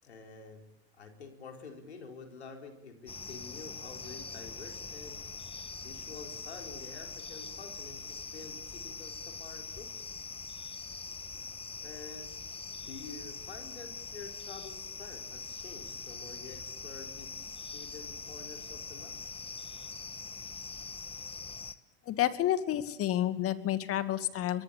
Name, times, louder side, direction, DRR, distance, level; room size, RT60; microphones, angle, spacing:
voice 1, 0.0-0.7 1.0-5.3 5.8-10.1 11.8-12.3 12.8-19.2, left 4 dB, 85° left, 4 dB, 4.5 m, -48 dB
sound 1, 3.1-21.8, left 4 dB, 15° left, 1.6 m, -43 dB
voice 2, 22.1-24.6, left 12 dB, 45° left, 10 dB, 2.4 m, -30 dB
24.0 x 23.0 x 8.4 m, 0.85 s
hypercardioid pair, 80°, 32 cm